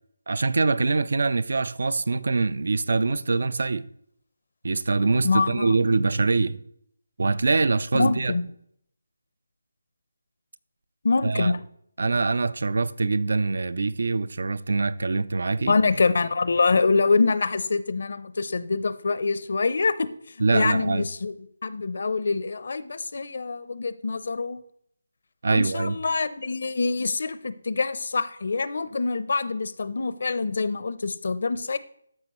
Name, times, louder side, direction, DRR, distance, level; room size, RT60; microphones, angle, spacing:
voice 1, 0.3-3.9 4.6-6.6 7.2-8.3 11.2-11.5 12.0-15.7 20.4-21.0 25.4-26.0, right 3 dB, 65° right, 0.4 m, -24 dB
voice 2, 5.2-5.8 7.9-8.5 11.0-11.6 15.7-20.1 20.5-21.3 21.6-24.6 25.5-31.8, left 4 dB, 60° left, 0.6 m, -25 dB
13.5 x 5.2 x 3.1 m
figure-of-eight pair, 160°, 0 cm